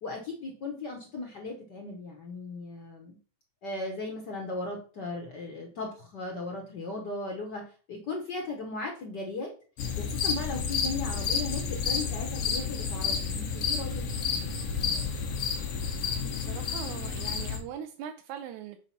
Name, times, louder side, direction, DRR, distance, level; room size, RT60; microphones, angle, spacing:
voice 1, 0.0-3.2 3.6-9.5 10.0-14.0 14.3-15.1, left 3 dB, 80° left, 1 dB, 0.9 m, -37 dB
sound 1, 9.8-17.6, left 6 dB, 60° left, 2.0 m, -30 dB
voice 2, 16.2-18.8, right 9 dB, 80° right, 6 dB, 1.9 m, -41 dB
5.9 x 4.1 x 5.7 m, 0.39 s
omnidirectional pair, 3.6 m